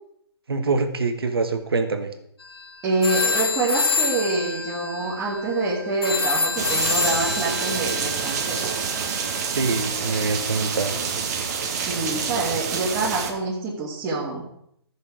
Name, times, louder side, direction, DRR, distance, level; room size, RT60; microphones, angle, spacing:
voice 1, 0.5-2.1 9.5-11.0, right 4 dB, 65° right, 7 dB, 1.5 m, -25 dB
sound 1, 2.4-2.6 3.0-9.7, left 4 dB, 65° left, 1.5 m, -27 dB
voice 2, 2.8-8.8 11.9-14.4, right 3 dB, 20° right, -6 dB, 2.4 m, -26 dB
sound 2, 6.6-13.3, right 6 dB, 40° right, 1.7 m, -27 dB
15.0 x 6.7 x 4.8 m, 0.73 s
figure-of-eight pair, 130°, 14 cm